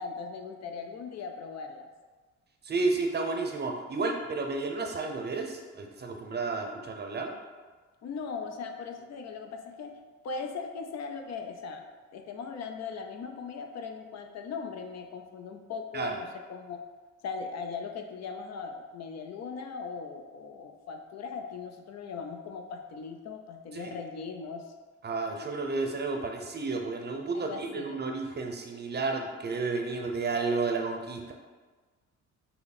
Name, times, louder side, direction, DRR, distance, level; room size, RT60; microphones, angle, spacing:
voice 1, 0.0-1.9 8.0-10.0 10.2-11.8 12.1-16.8 17.2-24.6 27.3-28.0, left 5 dB, 60° left, 4 dB, 0.5 m, -39 dB
voice 2, 2.6-7.4 15.9-16.1 23.7-24.0 25.0-31.3, right 3 dB, 35° right, 2 dB, 0.7 m, -32 dB
5.6 x 2.0 x 4.1 m, 1.4 s
cardioid pair, 90°, 30 cm